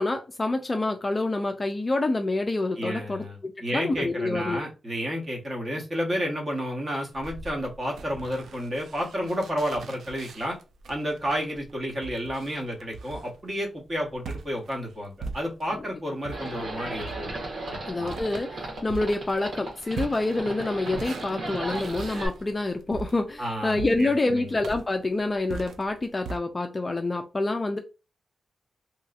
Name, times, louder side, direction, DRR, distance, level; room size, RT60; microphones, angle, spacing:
voice 1, 0.0-4.6 15.7-15.8 17.9-27.8, left 2 dB, 20° left, 0.3 m, -27 dB
voice 2, 2.8-10.6 10.9-18.2 23.4-24.5, equal, 30° right, 1.1 m, -31 dB
sound 1, 7.1-15.8 16.2-26.4, right 4 dB, 80° right, 0.4 m, -41 dB
Livestock farm animals working animals, 16.3-22.3, right 2 dB, 60° right, 1.4 m, -36 dB
3.0 x 2.8 x 2.4 m
wide cardioid pair, 165°, 0 cm